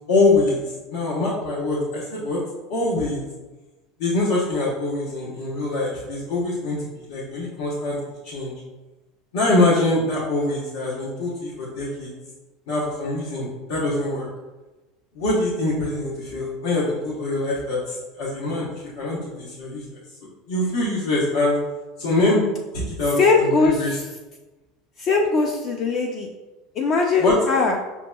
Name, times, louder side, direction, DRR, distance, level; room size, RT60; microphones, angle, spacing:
voice 1, 0.1-0.6 0.9-2.4 2.7-3.2 4.0-8.0 8.2-8.6 9.3-12.1 12.7-14.3 15.1-20.0 20.5-21.6 22.0-22.5 22.7-24.0 27.2-27.3, left 2 dB, 85° left, -8 dB, 1.0 m, -24 dB
voice 2, 23.2-23.8 25.0-26.3 26.8-27.8, left 4 dB, 35° left, 2 dB, 0.3 m, -20 dB
5.9 x 2.9 x 2.2 m, 1.1 s
supercardioid pair, 165°, 0 cm